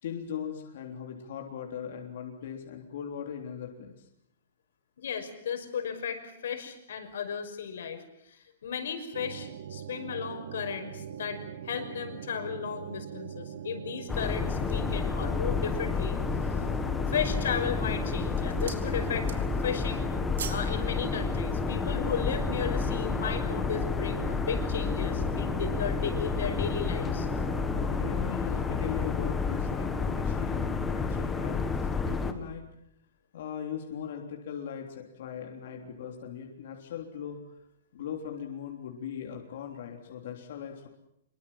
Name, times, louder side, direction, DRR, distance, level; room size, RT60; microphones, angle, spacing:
voice 1, 0.0-4.1 27.7-32.6 33.3-37.6 37.9-40.9, left 8 dB, 50° left, 2 dB, 3.5 m, -39 dB
voice 2, 5.0-16.2 16.5-16.7 17.1-20.1 20.5-27.3, left 7 dB, 70° left, 7 dB, 5.7 m, -35 dB
sound 1, 9.1-28.3, right 9 dB, 55° right, 1.5 m, -42 dB
sound 2, 14.0-15.0 15.6-15.7 16.2-16.7 17.4-17.8 18.1-18.9 19.2-19.7 20.0-20.7 21.0-21.2, right 7 dB, 85° right, 4.1 m, -43 dB
sound 3, 14.1-32.3, left 5 dB, 10° left, 1.5 m, -30 dB
26.0 x 23.5 x 7.6 m, 0.79 s
hypercardioid pair, 175°, 0 cm